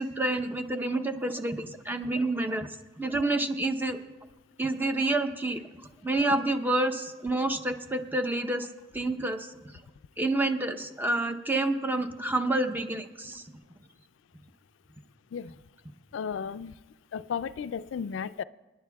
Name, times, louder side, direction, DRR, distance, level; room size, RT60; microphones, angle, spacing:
voice 1, 0.0-2.7 3.0-4.0 4.6-8.7 8.9-9.5 10.2-13.4, right 2 dB, 10° right, 6 dB, 0.7 m, -28 dB
voice 2, 16.1-16.7 17.1-18.4, left 7 dB, 90° left, 15 dB, 0.4 m, -34 dB
27.5 x 10.5 x 2.3 m, 1.2 s
head